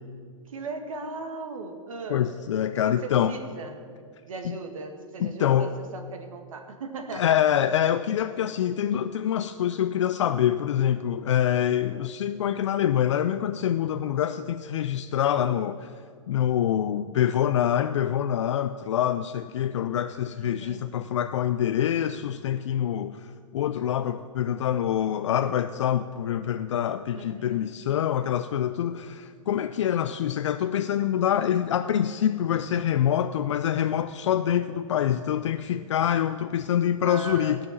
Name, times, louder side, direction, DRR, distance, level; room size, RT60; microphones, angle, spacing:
voice 1, 0.5-2.3 2.8-4.0 4.3-7.4 11.9-12.0 20.4-20.9 27.1-27.8 29.8-30.1 37.0-37.6, right 4 dB, 80° right, 6 dB, 1.8 m, -38 dB
voice 2, 2.1-3.3 5.2-5.7 7.2-15.9 16.3-37.6, left 10 dB, 60° left, 10 dB, 0.4 m, -25 dB
16.5 x 5.8 x 7.7 m, 2.1 s
hypercardioid pair, 165°, 17 cm